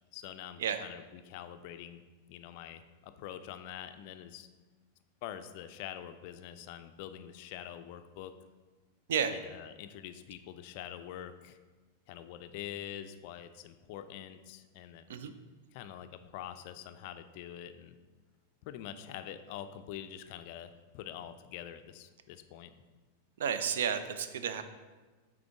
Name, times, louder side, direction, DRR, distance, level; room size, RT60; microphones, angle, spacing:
voice 1, 0.1-2.0 2.3-4.5 5.2-8.4 9.3-11.6 12.1-15.0 15.7-18.0 18.6-22.7, left 10 dB, 50° left, 10 dB, 0.3 m, -45 dB
voice 2, 23.4-24.6, right 7 dB, 60° right, 10 dB, 0.4 m, -32 dB
8.5 x 3.5 x 3.5 m, 1.3 s
figure-of-eight pair, 90°, 0 cm